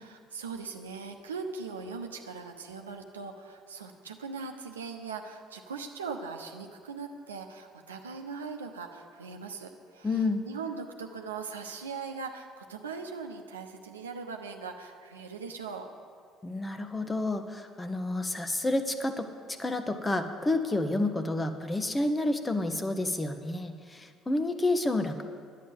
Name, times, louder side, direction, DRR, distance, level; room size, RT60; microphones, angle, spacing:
voice 1, 0.0-15.9, right 5 dB, 90° right, 3 dB, 0.8 m, -40 dB
voice 2, 10.0-10.4 16.4-19.3 19.6-25.2, left 2 dB, 20° left, 8 dB, 1.1 m, -29 dB
11.0 x 9.4 x 7.2 m, 2.1 s
hypercardioid pair, 55°, 0 cm